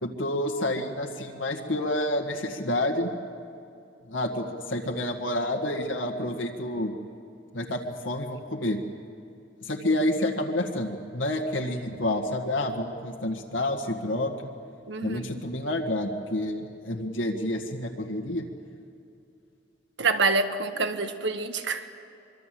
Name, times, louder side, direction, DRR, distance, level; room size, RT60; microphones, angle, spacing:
voice 1, 0.0-3.1 4.1-6.9 7.5-8.8 9.6-14.5 15.0-18.5, left 1 dB, 85° left, 1 dB, 1.9 m, -29 dB
voice 2, 14.9-15.4 20.0-21.9, right 3 dB, 70° right, 8 dB, 1.5 m, -27 dB
24.5 x 24.0 x 7.7 m, 2.6 s
head